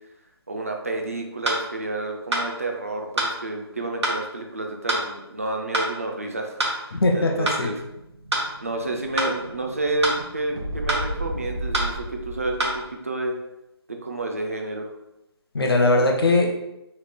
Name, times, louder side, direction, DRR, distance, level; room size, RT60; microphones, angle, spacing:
voice 1, 0.5-6.8 7.1-7.8 8.6-13.4 13.9-14.9, right 2 dB, 35° right, 2 dB, 0.3 m, -30 dB
sound 1, 1.4-1.6 2.3-2.5 3.2-3.3 4.0-4.2 4.9-5.1 5.7-5.9 6.6-6.8 7.5-7.6 8.3-8.5 9.2-9.3 10.0-10.2 10.9-11.1 11.7-11.9 12.6-12.8, right 1 dB, 85° right, 1.0 m, -24 dB
Explosion, 6.8-12.9, equal, 55° right, 0.8 m, -35 dB
voice 2, 6.9-7.7 15.5-16.5, left 2 dB, 65° left, 2 dB, 0.7 m, -20 dB
3.2 x 2.2 x 3.3 m, 0.89 s
hypercardioid pair, 175°, 14 cm